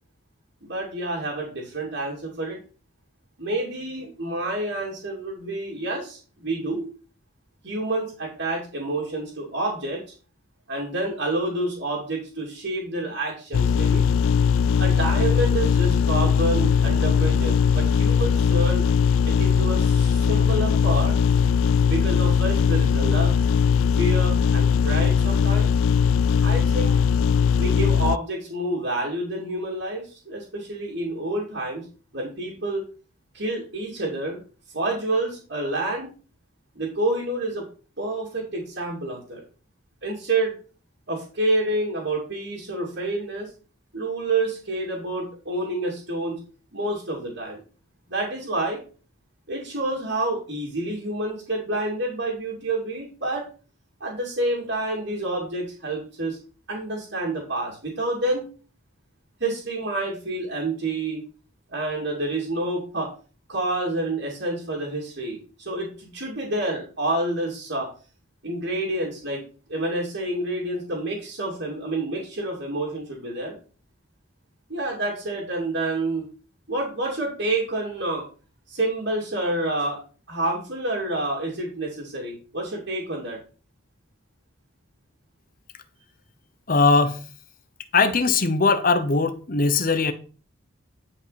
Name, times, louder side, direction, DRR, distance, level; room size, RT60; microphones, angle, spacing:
voice 1, 0.6-2.6 3.4-6.9 7.6-10.0 10.7-14.1 14.8-18.9 19.2-21.1 21.9-23.4 23.9-25.7 26.4-26.9 27.5-31.9 32.1-32.8 33.3-34.4 34.7-36.1 36.7-37.7 38.0-39.4 40.0-40.5 41.1-43.5 43.9-46.4 46.7-47.6 48.1-48.8 49.5-53.4 54.0-56.4 56.7-58.4 59.4-61.2 61.7-63.1 63.5-67.9 68.4-69.4 69.7-73.5 74.7-76.2 76.7-78.2 78.7-80.0 80.3-83.4, right 2 dB, 55° right, 2.7 m, -28 dB
sound 1, 13.5-28.2, left 6 dB, 75° left, 0.3 m, -20 dB
voice 2, 86.7-87.2 87.9-90.1, left 4 dB, 40° left, 0.9 m, -20 dB
10.5 x 5.3 x 4.2 m
head